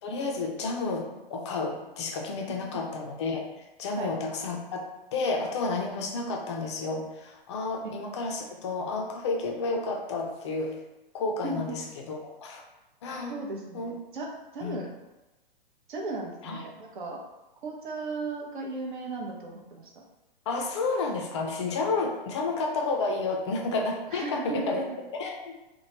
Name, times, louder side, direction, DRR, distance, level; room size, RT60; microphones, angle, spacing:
voice 1, 0.0-3.5 3.8-10.8 11.1-12.6 13.0-13.3 13.7-13.9 14.6-14.8 16.4-16.6 20.5-24.8 25.1-25.6, left 3 dB, 30° left, 1 dB, 0.4 m, -31 dB
voice 2, 11.4-11.8 13.3-14.9 15.9-17.2 17.6-19.9 24.1-25.0, right 3 dB, 55° right, 0 dB, 0.7 m, -36 dB
3.0 x 2.2 x 2.8 m, 1.0 s
figure-of-eight pair, 110°, 29 cm